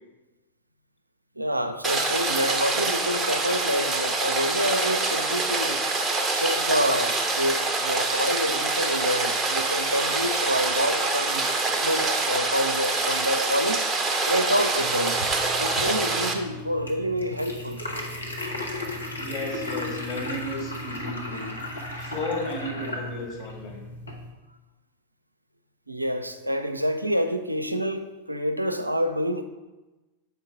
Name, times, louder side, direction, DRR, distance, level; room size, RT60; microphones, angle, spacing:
voice 1, 1.4-5.8 6.3-13.8 14.3-15.2 15.6-17.8 25.9-29.4, equal, 85° right, 7 dB, 0.5 m, -27 dB
Rain, 1.8-16.3, right 3 dB, 15° right, 0.8 m, -25 dB
sound 1, 14.8-24.3, left 1 dB, 80° left, 1.0 m, -35 dB
voice 2, 19.2-21.5 22.0-23.8, left 1 dB, 30° left, -2 dB, 1.9 m, -33 dB
6.8 x 4.5 x 4.7 m, 1.1 s
figure-of-eight pair, 90°, 0 cm